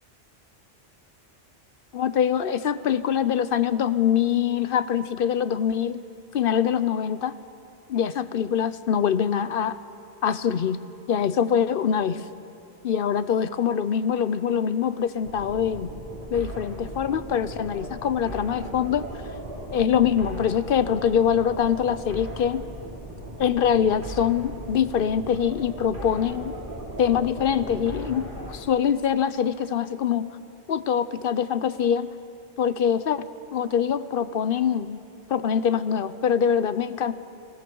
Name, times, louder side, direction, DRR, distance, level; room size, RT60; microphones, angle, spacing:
voice 1, 1.9-6.0 6.3-7.3 7.9-9.8 10.2-10.8 11.1-12.2 12.8-15.9 16.3-19.0 19.7-22.6 23.4-26.5 27.0-30.3 30.7-32.1 32.6-33.2 33.5-35.0 35.3-37.1, left 8 dB, 55° left, 14 dB, 0.8 m, -24 dB
sound 1, 15.2-28.6, right 1 dB, 45° right, 3.3 m, -38 dB
29.0 x 20.0 x 4.6 m, 2.6 s
omnidirectional pair, 1.2 m